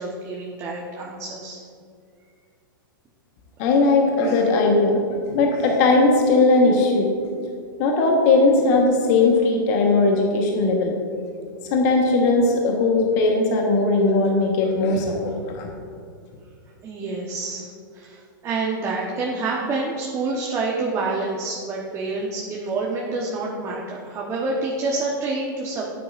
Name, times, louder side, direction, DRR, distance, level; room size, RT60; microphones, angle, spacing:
voice 1, 0.0-1.6 16.8-25.9, right 3 dB, 25° right, -3 dB, 1.2 m, -28 dB
voice 2, 3.6-5.0 5.3-7.1 7.8-10.9 11.7-15.7, left 3 dB, 50° left, 1 dB, 1.3 m, -18 dB
12.0 x 9.6 x 2.6 m, 2.2 s
hypercardioid pair, 110°, 11 cm